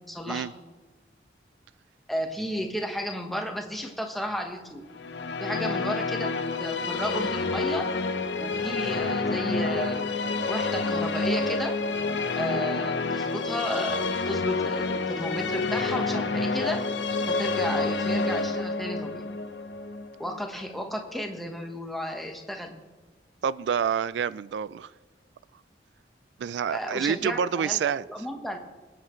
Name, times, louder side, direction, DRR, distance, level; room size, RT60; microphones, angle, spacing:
voice 1, 0.1-0.5 2.1-4.8 5.4-7.9 8.4-10.1 10.5-11.8 12.4-16.9 17.3-19.2 20.2-22.8 26.7-28.6, equal, ahead, 1.2 m, -33 dB
sound 1, 4.9-21.0, left 3 dB, 80° left, 0.8 m, -28 dB
voice 2, 23.4-24.9 26.4-28.0, right 7 dB, 80° right, 0.3 m, -27 dB
25.0 x 8.9 x 3.2 m
head